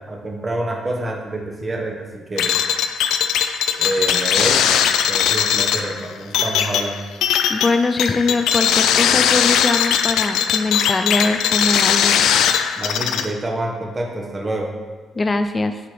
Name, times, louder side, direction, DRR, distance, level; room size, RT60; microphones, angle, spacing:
voice 1, 0.1-2.5 3.8-4.6 5.1-7.0 12.8-14.7, right 1 dB, 25° right, 0 dB, 1.1 m, -27 dB
sound 1, 2.4-13.2, left 8 dB, 85° left, 0.4 m, -19 dB
voice 2, 7.5-12.4 15.1-15.8, left 3 dB, 30° left, 8 dB, 0.5 m, -22 dB
8.0 x 3.0 x 5.0 m, 1.3 s
cardioid pair, 90°, 0 cm